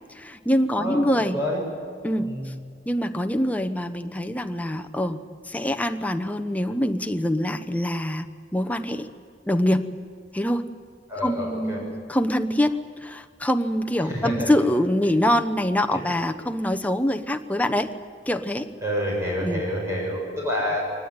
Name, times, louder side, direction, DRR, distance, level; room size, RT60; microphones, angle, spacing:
voice 1, 0.1-1.4 2.0-2.5 2.9-5.2 5.5-9.1 9.4-9.9 10.3-10.6 11.2-17.9 18.3-18.7 19.4-19.6, left 1 dB, 10° left, 8 dB, 0.9 m, -24 dB
voice 2, 11.1-11.8 14.0-14.5 15.9-16.0 18.8-20.8, equal, 15° right, -2 dB, 6.9 m, -28 dB
23.0 x 19.0 x 9.6 m, 2.1 s
head